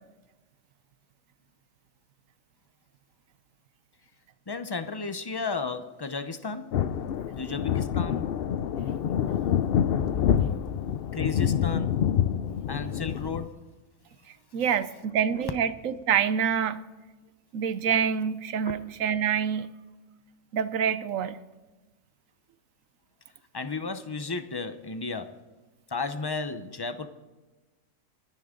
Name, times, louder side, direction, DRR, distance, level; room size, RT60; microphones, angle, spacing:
voice 1, 4.5-6.8 7.3-8.3 11.1-12.0 12.7-13.5 23.5-25.4 25.9-27.1, left 4 dB, 30° left, 9 dB, 0.5 m, -33 dB
sound 1, 6.7-13.5, left 9 dB, 85° left, 0.5 m, -27 dB
voice 2, 14.5-16.8 17.5-19.7 20.5-21.4, right 8 dB, 65° right, 13 dB, 1.0 m, -26 dB
26.0 x 10.5 x 3.8 m, 1.2 s
omnidirectional pair, 1.7 m